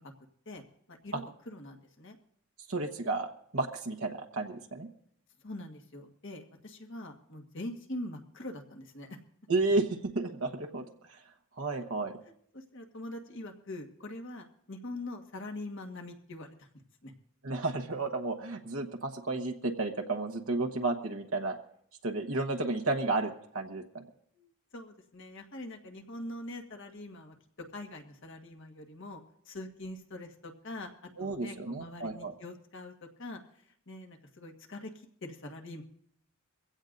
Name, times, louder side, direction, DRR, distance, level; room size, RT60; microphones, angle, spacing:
voice 1, 0.9-2.2 5.4-9.2 12.5-16.7 17.0-17.1 24.4-27.3 27.7-29.2 29.4-30.9 31.2-32.9 33.2-33.4 33.9-34.9 35.2-35.8, left 1 dB, 60° left, 3 dB, 1.6 m, -43 dB
voice 2, 2.7-4.9 9.5-10.8 11.6-12.2 17.4-21.6 22.0-24.0 31.2-32.3, right 3 dB, 75° right, 3 dB, 1.1 m, -32 dB
23.0 x 16.0 x 2.6 m, 0.68 s
head